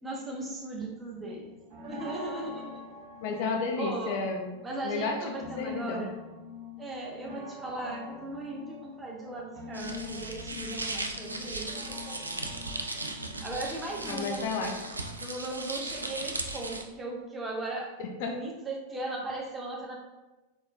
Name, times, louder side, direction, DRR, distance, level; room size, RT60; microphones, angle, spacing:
voice 1, 0.0-1.5 1.9-2.8 3.8-4.2 4.6-6.1 6.8-12.4 12.9-13.0 13.4-14.4 15.2-20.0, right 2 dB, 15° right, -2 dB, 0.9 m, -38 dB
sound 1, 1.1-15.2, left 4 dB, 45° right, 1.0 m, -45 dB
voice 2, 3.2-5.2 5.6-6.1 14.1-14.7 18.0-18.4, left 4 dB, 50° left, 3 dB, 0.5 m, -32 dB
sound 2, 9.7-16.8, right 2 dB, 80° right, 0.4 m, -37 dB
4.1 x 3.7 x 2.5 m, 1.1 s
figure-of-eight pair, 90°, 0 cm